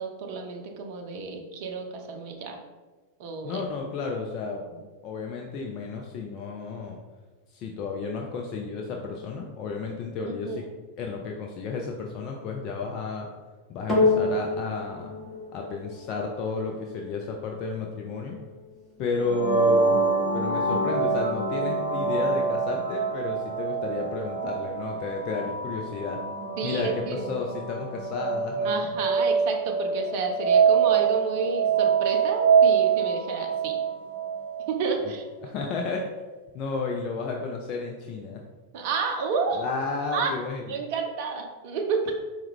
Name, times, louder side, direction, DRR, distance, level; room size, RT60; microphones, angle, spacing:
voice 1, 0.0-2.6 3.2-3.6 10.3-10.6 26.6-27.2 28.6-33.8 34.7-35.3 38.7-39.6 40.1-40.3 40.7-42.1, right 4 dB, 45° right, 3 dB, 0.5 m, -30 dB
voice 2, 3.4-4.6 5.0-7.0 7.5-10.6 11.0-13.3 13.7-15.1 15.5-18.4 19.0-19.9 20.3-26.2 26.6-28.9 35.4-36.0 36.5-38.4 39.5-40.6, left 4 dB, 40° left, 0 dB, 0.4 m, -32 dB
sound 1, 13.9-22.5 23.2-23.3, left 3 dB, 10° left, 0.9 m, -31 dB
sound 2, 19.2-34.9, right 5 dB, 80° left, 0.6 m, -25 dB
4.4 x 2.1 x 3.4 m, 1.3 s
figure-of-eight pair, 90°, 0 cm